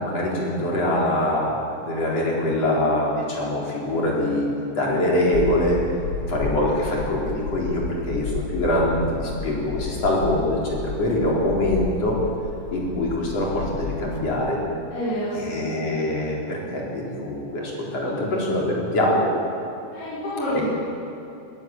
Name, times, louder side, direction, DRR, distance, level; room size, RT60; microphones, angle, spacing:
voice 1, 0.0-4.5 4.7-5.8 6.3-12.2 12.7-14.6 15.3-19.3 20.5-20.6, left 1 dB, 40° left, -3 dB, 5.0 m, -24 dB
sound 1, 5.3-14.5, left 4 dB, 75° left, 1.1 m, -32 dB
voice 2, 14.9-15.9 19.9-20.5, equal, 90° left, -12 dB, 8.2 m, -29 dB
23.5 x 13.5 x 9.2 m, 2.9 s
omnidirectional pair, 4.6 m